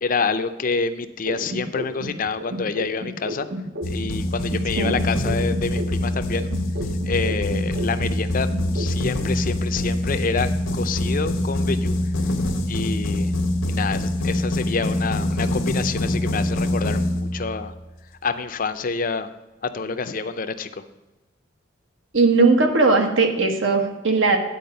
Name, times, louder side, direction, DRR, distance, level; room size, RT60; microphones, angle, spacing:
voice 1, 0.0-3.5 3.9-6.5 7.0-12.0 12.7-13.3 13.7-17.7 18.2-19.3 19.6-20.8, left 4 dB, 45° left, 11 dB, 0.5 m, -27 dB
sound 1, 1.3-4.2 4.5-8.2 8.5-9.2, equal, 55° right, 0.8 m, -33 dB
sound 2, 3.8-17.7, left 1 dB, 90° left, 1.0 m, -24 dB
voice 2, 22.1-24.4, right 3 dB, 75° right, 4 dB, 1.2 m, -18 dB
9.3 x 4.6 x 6.9 m, 1.1 s
head